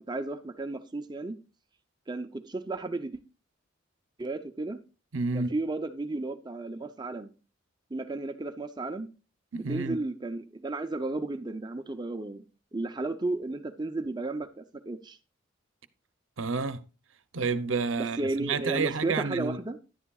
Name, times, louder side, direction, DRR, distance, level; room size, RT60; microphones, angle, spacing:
voice 1, 0.0-1.4 2.1-3.2 4.2-4.8 5.3-7.3 7.9-9.1 9.5-12.4 12.7-15.2 18.0-19.8, right 2 dB, 20° right, 0.5 m, -33 dB
voice 2, 5.1-5.5 9.5-10.0 16.4-16.8 17.3-19.6, right 4 dB, 85° right, 0.7 m, -30 dB
11.0 x 9.8 x 2.3 m
head